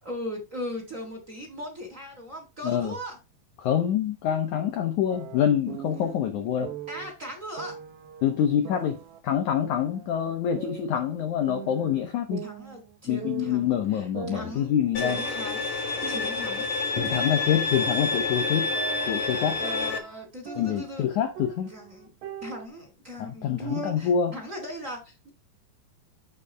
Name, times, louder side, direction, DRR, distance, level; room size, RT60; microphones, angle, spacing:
voice 1, 0.0-3.2 5.9-6.2 6.9-7.7 12.4-16.7 17.0-17.4 19.6-21.1 21.7-22.1 22.4-25.3, equal, 20° right, 3.1 m, -38 dB
voice 2, 2.6-2.9 3.6-6.7 8.2-9.0 9.2-12.5 13.1-15.2 17.0-18.7 19.1-19.6 20.6-21.7 23.2-24.3, left 9 dB, 80° left, 1.7 m, -26 dB
sound 1, 5.1-6.2 6.6-7.1 7.6-9.2 9.6-11.2 11.5-13.0 13.2-13.7 14.1-16.6 16.9-21.1 21.4-22.7, right 9 dB, 90° right, 3.6 m, -41 dB
Bowed string instrument, 14.9-20.0, left 3 dB, 55° left, 2.2 m, -28 dB
8.3 x 6.8 x 3.4 m
omnidirectional pair, 4.9 m